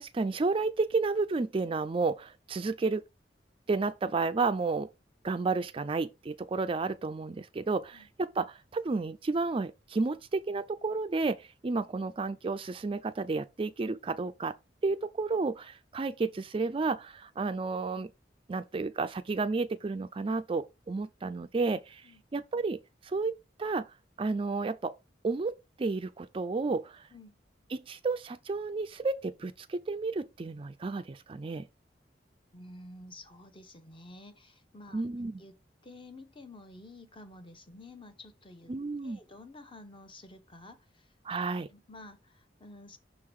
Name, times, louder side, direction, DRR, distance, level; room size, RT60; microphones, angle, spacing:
voice 1, 0.0-3.0 3.7-4.9 5.2-14.5 14.8-18.1 18.5-23.9 24.2-24.9 25.2-27.1 27.7-31.7 34.9-35.4 38.7-39.2 41.2-41.7, right 3 dB, 30° right, 0.4 m, -32 dB
voice 2, 32.5-35.0 35.4-35.6 35.8-38.7 39.0-41.1 41.7-43.0, left 2 dB, 30° left, 0.9 m, -50 dB
6.1 x 3.7 x 4.7 m
head